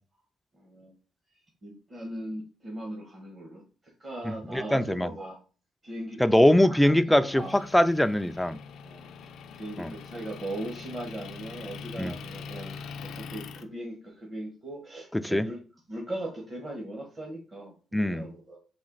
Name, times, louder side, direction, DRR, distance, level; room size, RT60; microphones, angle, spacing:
voice 1, 0.5-0.9 1.3-5.4 5.8-7.6 8.8-9.1 9.6-15.6 15.9-18.6, right 1 dB, 35° right, 1.2 m, -39 dB
voice 2, 4.2-5.1 6.2-8.6 9.8-9.9 12.0-12.1 15.1-15.5 17.9-18.3, left 1 dB, 5° left, 0.3 m, -22 dB
Motor vehicle (road) / Engine, 7.3-13.6, left 5 dB, 75° left, 0.4 m, -43 dB
4.2 x 2.8 x 3.8 m
cardioid pair, 85°, 0 cm